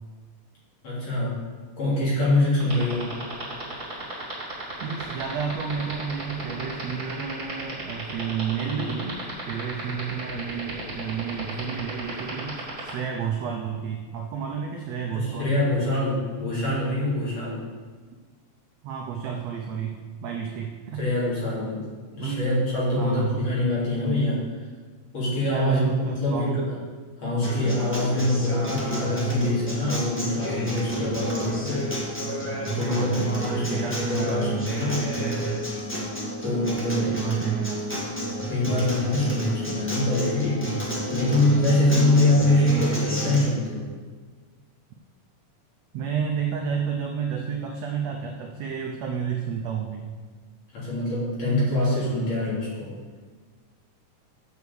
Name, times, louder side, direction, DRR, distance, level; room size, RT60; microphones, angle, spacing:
voice 1, 0.8-1.4 1.8-3.1 15.1-17.6 20.9-24.4 25.1-26.8 27.2-31.9 32.7-35.1 36.4-37.2 38.4-43.9 50.7-52.9, left 1 dB, 50° left, -8 dB, 4.1 m, -24 dB
sound 1, 2.6-12.9, right 3 dB, 10° right, 2.3 m, -34 dB
voice 2, 4.8-9.2 9.5-15.5 18.8-21.0 22.2-22.5 23.0-23.5 25.5-26.6 32.9-35.0 37.0-37.9 45.9-50.0, right 7 dB, 80° right, 2 dB, 1.5 m, -31 dB
Acoustic guitar, 27.4-43.4, right 1 dB, 20° left, 0.3 m, -30 dB
7.1 x 6.4 x 7.0 m, 1.5 s
omnidirectional pair, 3.8 m